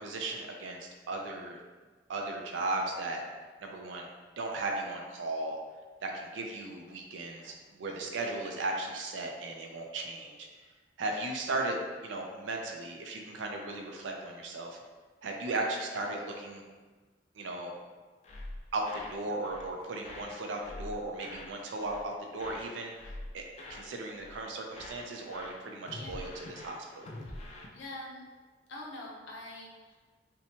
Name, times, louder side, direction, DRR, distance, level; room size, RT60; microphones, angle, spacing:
voice 1, 0.0-1.6 2.1-3.2 3.6-4.1 4.4-5.6 6.0-10.5 11.0-14.8 15.2-16.7 17.4-17.7 18.7-22.9 23.3-23.4 23.7-27.1, right 2 dB, 80° right, 1 dB, 0.4 m, -36 dB
State of Emergency, 18.2-19.2 19.4-19.7 20.0-21.5 21.8-22.1 22.4-23.9 24.1-24.4 24.7-27.7, left 1 dB, 35° left, 0.3 m, -45 dB
voice 2, 27.7-28.2 28.7-30.0, left 1 dB, 80° left, -2 dB, 0.6 m, -44 dB
2.8 x 2.2 x 2.8 m, 1.4 s
head